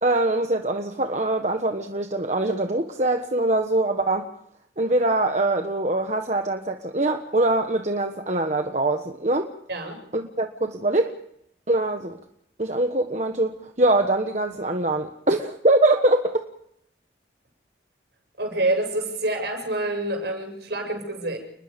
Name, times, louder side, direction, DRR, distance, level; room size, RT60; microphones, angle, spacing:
voice 1, 0.0-4.3 4.8-9.5 10.1-11.2 11.7-12.2 12.6-16.4, right 2 dB, 40° right, 5 dB, 1.4 m, -23 dB
voice 2, 18.4-21.4, right 2 dB, 65° right, 4 dB, 7.6 m, -27 dB
29.5 x 21.0 x 5.4 m, 0.74 s
head